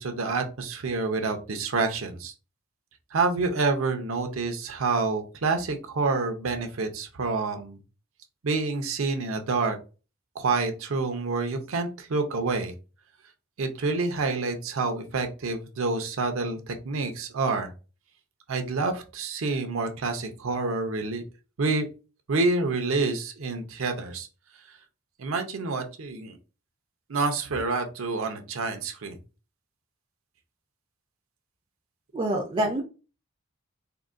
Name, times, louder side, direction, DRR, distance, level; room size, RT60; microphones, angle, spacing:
voice 1, 0.0-2.3 3.1-7.8 8.4-9.8 10.4-12.7 13.6-17.7 18.5-21.2 21.6-21.9 22.3-24.3 25.2-26.3 27.1-29.2, right 3 dB, 75° right, 6 dB, 0.6 m, -28 dB
voice 2, 32.1-32.8, right 1 dB, 25° right, 2 dB, 0.4 m, -26 dB
3.7 x 2.2 x 2.4 m, 0.32 s
head